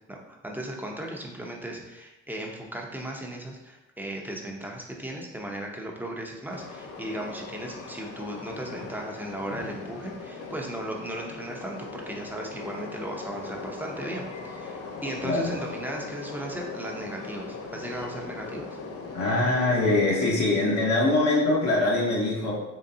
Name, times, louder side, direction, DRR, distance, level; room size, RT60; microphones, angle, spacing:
voice 1, 0.1-18.7, right 1 dB, 5° right, -1 dB, 0.6 m, -36 dB
Train, 6.5-20.0, left 4 dB, 50° left, 0.6 m, -39 dB
voice 2, 19.1-22.5, left 2 dB, 65° left, -5 dB, 1.0 m, -23 dB
3.8 x 3.2 x 2.7 m, 0.99 s
cardioid pair, 90°, 30 cm